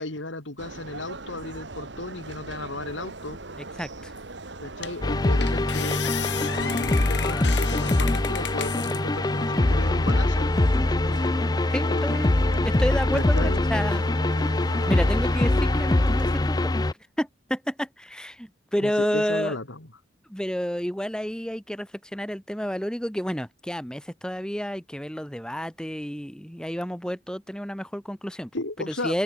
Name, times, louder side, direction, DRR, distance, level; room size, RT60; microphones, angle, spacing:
voice 1, 0.0-3.4 4.6-6.0 6.5-10.5 11.9-12.3 13.1-13.6 18.8-19.9 28.5-29.2, left 2 dB, 80° left, 3.0 m, -34 dB
sound 1, 0.6-16.4, right 2 dB, 65° right, 2.1 m, -40 dB
voice 2, 3.8-4.1 11.7-12.3 12.6-14.0 14.9-16.7 17.2-19.6 20.3-28.5 28.9-29.2, equal, 5° left, 1.9 m, -30 dB
sound 2, 4.2-4.3 4.8-5.1 5.4-9.0 9.5-10.2, left 9 dB, 60° left, 0.7 m, -34 dB
sound 3, 5.0-16.9, left 2 dB, 20° left, 0.5 m, -23 dB
open air
head